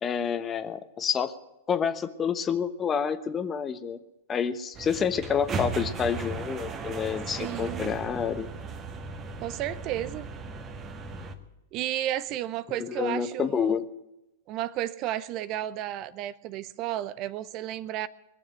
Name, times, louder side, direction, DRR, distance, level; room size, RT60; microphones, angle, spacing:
voice 1, 0.0-1.3 1.7-4.0 4.3-8.5 12.9-13.8, left 7 dB, 25° left, 11 dB, 1.1 m, -28 dB
sound 1, 4.7-11.4, right 3 dB, 25° right, 1.7 m, -36 dB
voice 2, 7.4-7.9 9.4-10.3 11.7-13.8 14.5-18.1, right 13 dB, 40° right, 17 dB, 0.6 m, -32 dB
21.5 x 7.3 x 9.3 m, 0.93 s
hypercardioid pair, 105°, 0 cm